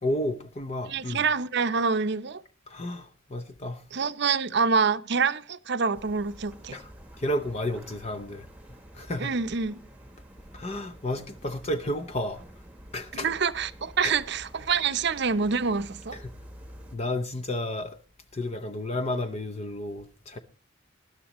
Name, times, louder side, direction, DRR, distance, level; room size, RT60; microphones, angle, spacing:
voice 1, 0.0-1.2 2.7-3.8 6.7-6.9 7.2-8.5 8.9-9.3 10.5-12.4 12.9-13.3 14.0-14.1 16.9-18.0 18.3-20.4, left 1 dB, 30° left, 0.7 m, -31 dB
voice 2, 0.9-2.4 3.9-6.8 9.2-9.8 13.1-16.2, right 5 dB, 55° right, 0.7 m, -26 dB
sound 1, 5.9-17.0, equal, 5° right, 1.2 m, -49 dB
20.0 x 11.0 x 3.0 m
head